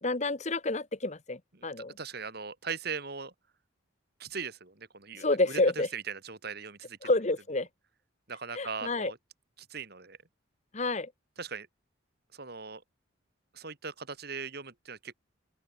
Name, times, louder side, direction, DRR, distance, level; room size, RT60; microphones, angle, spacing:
voice 1, 0.0-1.9 5.2-5.9 7.0-7.7 8.5-9.1 10.7-11.1, left 2 dB, 35° left, 1.2 m, -29 dB
voice 2, 2.0-3.3 4.2-5.6 5.9-7.1 8.3-9.2 9.7-10.2 11.4-11.7 12.3-12.8 13.5-15.1, right 5 dB, 55° right, 2.2 m, -39 dB
open air
head